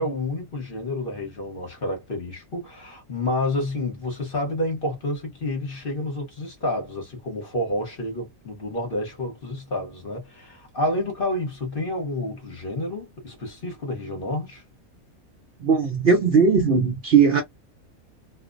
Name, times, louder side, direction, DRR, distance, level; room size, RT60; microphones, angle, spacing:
voice 1, 0.0-14.6, left 1 dB, 45° left, 1.0 m, -29 dB
voice 2, 15.6-17.4, right 5 dB, 55° right, 0.7 m, -18 dB
2.5 x 2.0 x 2.4 m
omnidirectional pair, 1.5 m